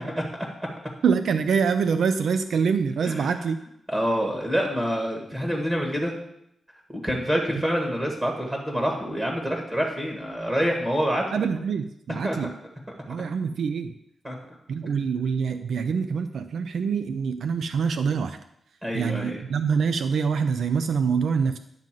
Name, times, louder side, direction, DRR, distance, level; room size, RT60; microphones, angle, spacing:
voice 1, 1.0-3.6 11.3-12.5 13.1-14.0 14.7-18.4 18.9-21.6, right 6 dB, 80° right, 10 dB, 0.4 m, -25 dB
voice 2, 3.0-3.4 3.9-6.1 6.9-11.3 12.2-12.4 14.2-14.4 18.8-19.4, equal, 15° right, 1 dB, 1.6 m, -26 dB
10.5 x 3.9 x 7.5 m, 0.77 s
wide cardioid pair, 110°, 0 cm